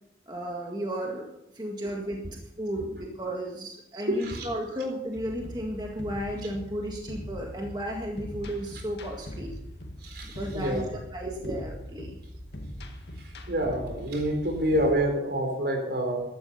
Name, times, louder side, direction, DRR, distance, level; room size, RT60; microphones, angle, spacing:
voice 1, 0.3-9.5 10.2-10.8 11.1-12.2, equal, 25° right, 0 dB, 1.8 m, -34 dB
voice 2, 3.9-4.8 10.0-10.9 11.2-11.5 13.2-16.2, equal, 65° right, 3 dB, 4.1 m, -28 dB
sound 1, 5.1-14.9, equal, 75° left, 2.0 m, -41 dB
15.0 x 12.0 x 5.6 m, 0.81 s
head